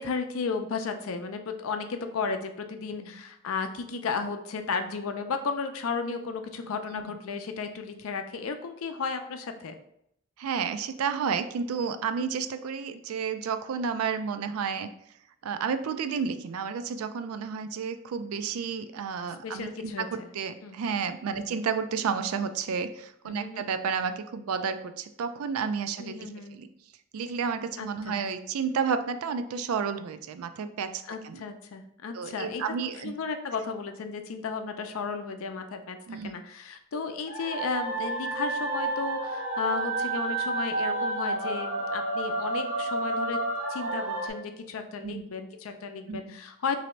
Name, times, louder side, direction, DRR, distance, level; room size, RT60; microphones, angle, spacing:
voice 1, 0.0-9.8 19.4-20.3 20.6-20.8 21.4-21.5 23.3-23.6 26.0-26.6 27.8-28.2 31.1-32.6 33.0-43.4 43.7-46.8, left 5 dB, 75° left, 7 dB, 0.5 m, -34 dB
voice 2, 10.4-14.9 15.4-20.1 20.3-26.7 27.1-31.4 32.1-33.1 36.1-36.4 45.0-45.2 46.1-46.3, right 6 dB, 90° right, 10 dB, 0.4 m, -31 dB
sound 1, 37.3-44.3, right 2 dB, 65° right, 1.2 m, -30 dB
3.0 x 2.7 x 4.3 m, 0.73 s
head